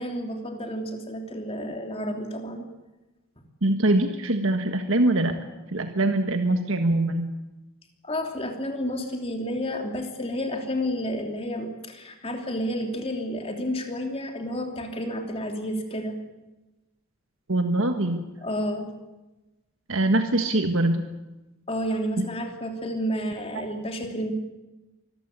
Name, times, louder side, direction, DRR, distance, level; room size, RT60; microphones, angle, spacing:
voice 1, 0.0-2.7 8.0-16.2 18.4-18.9 21.7-24.3, equal, 25° left, 4 dB, 3.1 m, -30 dB
voice 2, 3.6-5.3 5.7-7.3 17.5-18.3 19.9-21.0 22.2-22.3, right 1 dB, 60° right, 6 dB, 1.6 m, -23 dB
24.5 x 15.0 x 9.9 m, 1.0 s
head